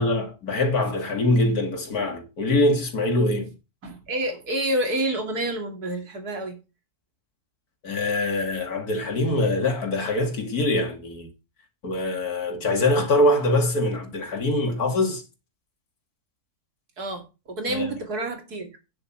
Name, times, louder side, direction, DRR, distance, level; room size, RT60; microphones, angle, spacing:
voice 1, 0.0-3.5 7.8-11.3 11.8-15.2 17.7-17.9, left 1 dB, 75° left, 2.9 m, -23 dB
voice 2, 3.8-6.6 17.0-18.7, right 1 dB, 90° right, 3.0 m, -28 dB
9.6 x 8.0 x 4.5 m
omnidirectional pair, 1.6 m